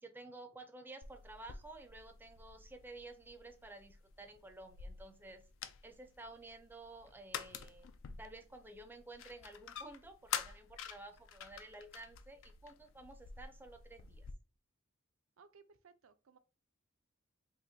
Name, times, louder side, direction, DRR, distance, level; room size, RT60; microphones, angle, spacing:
voice 1, 0.0-5.5 5.8-14.3, right 2 dB, 10° right, 0.4 m, -53 dB
sound 1, 1.0-14.3, left 8 dB, 65° left, 0.4 m, -48 dB
voice 2, 15.4-16.4, right 5 dB, 85° right, 0.5 m, -62 dB
4.3 x 2.5 x 2.7 m
head